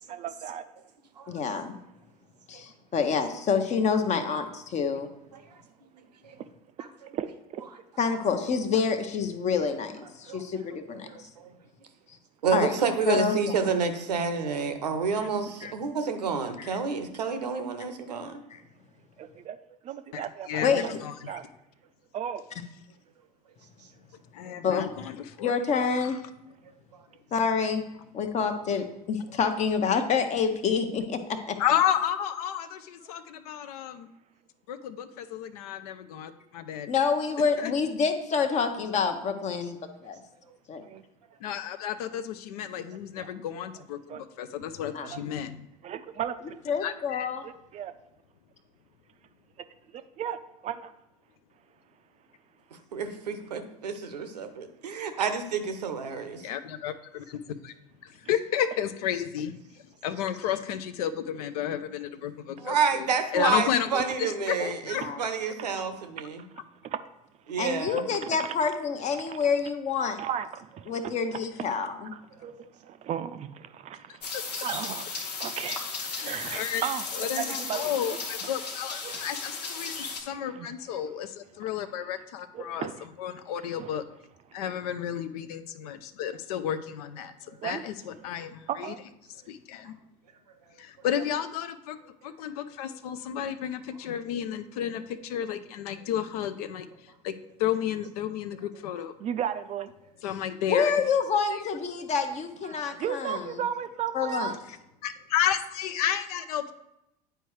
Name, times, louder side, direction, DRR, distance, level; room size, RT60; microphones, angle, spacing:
voice 1, 0.1-0.6 7.1-7.3 7.6-7.7 19.2-19.6 19.9-20.6 21.3-21.4 22.1-22.4 40.9-41.0 44.1-44.2 45.8-46.3 47.7-47.9 50.2-50.4 50.6-50.8 70.2-70.5 72.4-72.5 73.0-73.5 73.8-74.0 74.6-75.0 75.4-75.8 76.1-77.0 77.4-78.2 79.0-79.2 80.6-80.7 82.5-82.9 87.6-87.8 88.7-89.0 99.2-99.9 102.7-104.6, right 9 dB, 35° right, 11 dB, 0.4 m, -33 dB
voice 2, 1.3-1.8 2.5-5.1 8.0-11.1 12.5-12.7 13.0-13.6 15.2-15.3 15.6-15.7 16.6-16.8 18.5-18.6 20.6-21.0 21.3-21.4 22.5-22.6 24.6-24.9 25.4-26.2 27.3-27.8 28.1-31.2 31.5-31.6 36.9-39.8 40.0-40.2 40.7-40.8 44.9-45.1 46.6-47.4 64.6-64.7 65.0-65.2 67.6-70.2 70.9-72.1 100.7-103.7 104.1-104.6, left 6 dB, 35° left, 7 dB, 0.8 m, -27 dB
voice 3, 11.1-11.5 12.4-18.4 52.9-56.5 62.6-66.4 67.5-68.0, right 5 dB, 80° right, 8 dB, 0.8 m, -29 dB
voice 4, 20.1-21.3 24.3-25.5 26.0-26.1 31.6-34.1 34.7-36.9 37.6-37.7 41.4-45.7 46.8-47.3 56.4-57.7 58.0-59.6 60.0-63.1 63.3-65.3 74.7-74.8 76.0-84.0 84.5-87.3 87.6-89.0 89.3-90.0 90.8-92.0 92.2-97.3 97.6-99.1 100.2-100.9 101.5-101.6 105.0-106.7, left 9 dB, 65° left, 12 dB, 0.5 m, -32 dB
sound 1, 74.2-80.2, left 4 dB, 85° left, 0.9 m, -35 dB
9.0 x 4.6 x 3.1 m, 0.86 s
hypercardioid pair, 80°, 20 cm